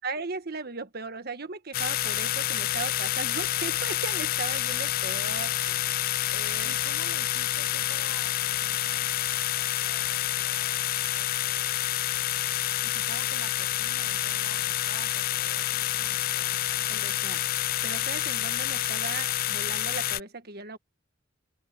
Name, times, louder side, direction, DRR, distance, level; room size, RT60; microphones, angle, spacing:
voice 1, 0.0-6.0 6.3-6.7 16.7-20.8, right 4 dB, 50° right, 1.6 m, -37 dB
sound 1, 1.7-20.2, left 14 dB, 45° left, 0.3 m, -28 dB
voice 2, 6.6-12.2 12.8-16.6, right 4 dB, 90° right, 1.5 m, -48 dB
open air
head